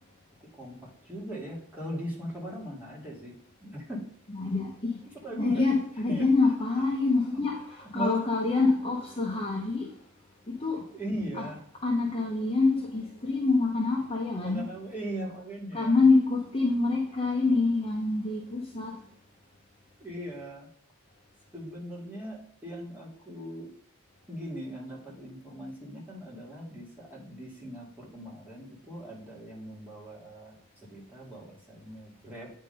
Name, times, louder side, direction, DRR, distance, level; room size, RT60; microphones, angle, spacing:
voice 1, 0.5-3.3 3.6-4.0 5.2-5.7 6.1-6.3 6.8-6.9 7.9-8.2 10.9-11.6 14.3-16.0 20.0-20.7 21.5-23.7 24.3-32.5, right 1 dB, 10° right, 2.2 m, -39 dB
voice 2, 4.3-5.0 5.4-9.9 10.5-10.8 11.4-11.5 11.8-14.6 15.7-19.0, left 3 dB, 25° left, 0.9 m, -26 dB
8.8 x 3.8 x 5.3 m
head